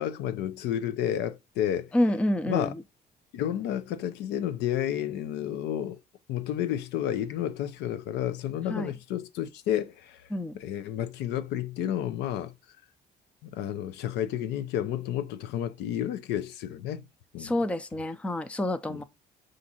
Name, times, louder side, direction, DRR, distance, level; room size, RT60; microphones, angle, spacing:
voice 1, 0.0-1.9 2.5-2.7 3.3-6.0 6.3-10.3 10.6-12.5 13.4-17.0 17.3-17.5 18.9-19.0, left 11 dB, 85° left, 0.5 m, -31 dB
voice 2, 1.9-2.8 8.7-8.9 10.3-10.6 17.4-19.0, left 1 dB, 5° left, 0.4 m, -28 dB
6.0 x 2.6 x 2.7 m
cardioid pair, 110°, 17 cm